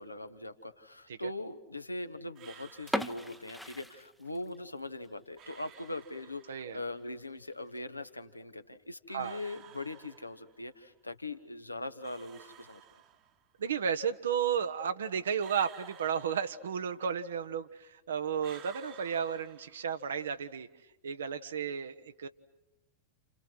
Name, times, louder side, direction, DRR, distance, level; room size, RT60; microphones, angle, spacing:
voice 1, 0.0-12.8, left 2 dB, 85° left, 9 dB, 1.3 m, -41 dB
sound 1, 2.3-3.8 5.4-6.8 9.2-10.7 12.0-13.6 15.4-17.1 18.4-20.2, right 10 dB, 35° right, 1.5 m, -55 dB
sound 2, 2.8-4.7 5.0-5.1 5.7-5.9 6.3-6.4 6.6-6.7 7.5-7.8, equal, ahead, 0.9 m, -38 dB
voice 2, 6.5-6.8 9.1-9.4 13.6-20.7 21.0-22.3, right 7 dB, 65° right, 10 dB, 1.1 m, -33 dB
29.5 x 29.5 x 6.2 m, 0.95 s
figure-of-eight pair, 90°, 0 cm